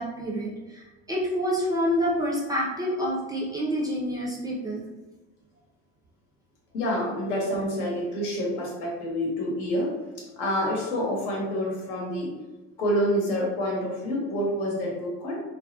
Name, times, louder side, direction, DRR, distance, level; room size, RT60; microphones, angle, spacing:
voice 1, 0.0-4.8, equal, 10° right, -4 dB, 0.3 m, -28 dB
voice 2, 6.7-12.3 12.8-15.4, equal, 85° left, -2 dB, 1.0 m, -28 dB
2.3 x 2.1 x 2.6 m, 1.1 s
supercardioid pair, 125°, 34 cm